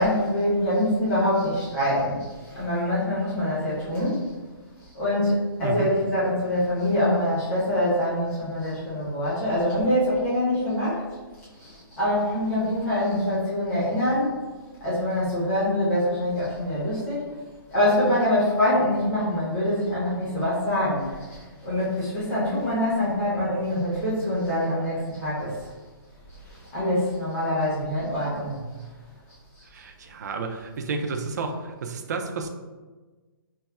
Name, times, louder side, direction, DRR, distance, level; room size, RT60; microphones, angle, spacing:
voice 1, 0.0-4.3 4.9-11.0 11.6-14.3 14.8-17.2 17.7-25.6 26.7-28.7, left 1 dB, 10° left, -10 dB, 0.8 m, -24 dB
voice 2, 29.6-32.5, right 4 dB, 45° right, 4 dB, 0.4 m, -31 dB
5.3 x 2.0 x 2.2 m, 1.3 s
hypercardioid pair, 170°, 13 cm